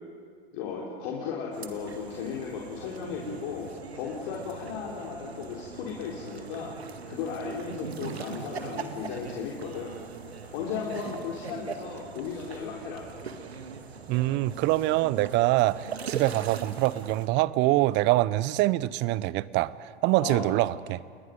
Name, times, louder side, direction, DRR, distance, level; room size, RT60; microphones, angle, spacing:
voice 1, 0.5-6.8 7.1-10.0 10.5-13.0 20.2-20.5, left 6 dB, 50° left, -2 dB, 3.8 m, -35 dB
sound 1, 1.5-17.3, right 5 dB, 80° right, 1.8 m, -41 dB
voice 2, 14.1-21.0, right 17 dB, 35° right, 19 dB, 0.7 m, -25 dB
29.5 x 20.5 x 5.3 m, 2.1 s
figure-of-eight pair, 95°, 31 cm